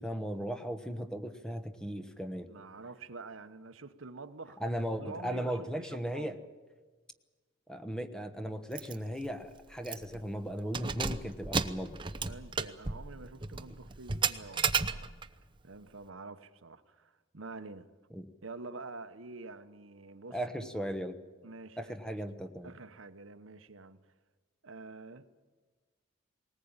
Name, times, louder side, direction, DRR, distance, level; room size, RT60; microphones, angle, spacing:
voice 1, 0.0-2.5 4.6-6.4 7.7-12.0 18.1-18.3 20.3-21.1 21.8-22.7, equal, 5° left, 8 dB, 1.1 m, -37 dB
voice 2, 2.5-4.6 5.0-6.3 12.3-15.1 15.6-17.9 18.4-20.7 21.4-22.0 22.6-24.0 24.6-25.3, right 3 dB, 90° right, 10 dB, 1.1 m, -47 dB
Keys jangling, 8.7-8.9 9.3-9.4 9.8-10.2 10.6-15.4, right 5 dB, 25° right, 0.8 m, -34 dB
20.0 x 19.0 x 8.9 m, 1.4 s
head